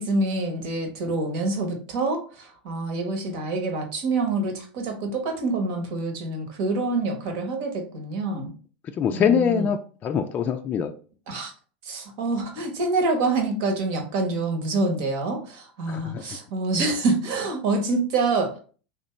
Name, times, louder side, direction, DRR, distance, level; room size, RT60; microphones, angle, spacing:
voice 1, 0.0-8.5 9.1-9.7 11.3-11.5 11.8-18.6, right 3 dB, 60° right, 4 dB, 1.1 m, -26 dB
voice 2, 9.0-10.9 15.9-16.2, left 7 dB, 30° left, 5 dB, 0.3 m, -23 dB
3.5 x 2.8 x 3.1 m, 0.39 s
hypercardioid pair, 90°, 5 cm